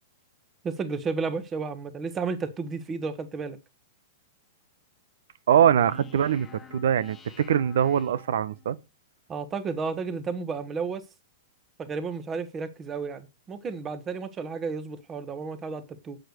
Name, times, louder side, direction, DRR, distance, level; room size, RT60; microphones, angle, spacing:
voice 1, 0.6-3.6 9.3-11.0 11.8-16.2, right 4 dB, 20° right, 1.4 m, -32 dB
sound 1, 5.5-8.8, left 6 dB, 15° left, 1.2 m, -49 dB
voice 2, 5.5-8.8, right 9 dB, 75° right, 1.0 m, -23 dB
8.1 x 7.7 x 6.6 m
hypercardioid pair, 135°, 0 cm